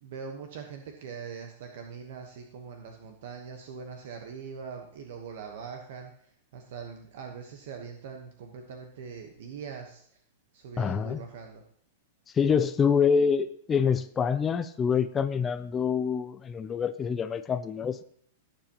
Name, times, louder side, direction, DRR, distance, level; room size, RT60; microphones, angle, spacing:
voice 1, 0.0-10.2 10.5-11.6, right 6 dB, 55° right, 4 dB, 1.1 m, -42 dB
voice 2, 10.8-11.2 12.3-18.0, left 6 dB, 15° left, 10 dB, 0.3 m, -26 dB
17.0 x 7.2 x 3.0 m, 0.63 s
supercardioid pair, 170°, 0 cm